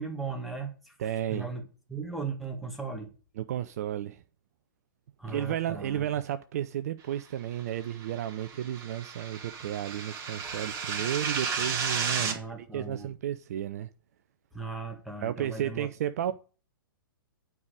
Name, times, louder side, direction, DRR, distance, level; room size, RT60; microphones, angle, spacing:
voice 1, 0.0-1.0 1.3-3.1 5.2-6.0 12.2-13.1 14.5-15.9, right 4 dB, ahead, 1.9 m, -37 dB
voice 2, 1.0-1.5 3.4-4.2 5.3-13.9 15.2-16.3, right 11 dB, 45° right, 0.5 m, -33 dB
sound 1, 7.9-12.4, right 5 dB, 25° right, 1.8 m, -33 dB
9.5 x 4.8 x 6.4 m
figure-of-eight pair, 115°, 12 cm